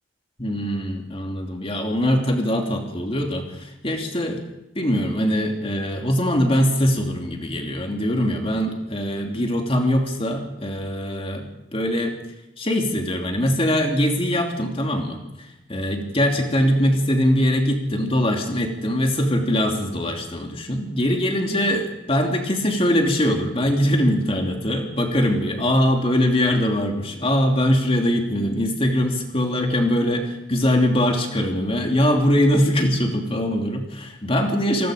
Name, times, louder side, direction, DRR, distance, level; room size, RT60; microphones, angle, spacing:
voice 1, 0.4-4.4 4.7-11.5 11.7-12.1 12.6-15.2 15.7-34.9, equal, 30° left, 2 dB, 2.9 m, -22 dB
26.5 x 20.5 x 5.1 m, 0.93 s
head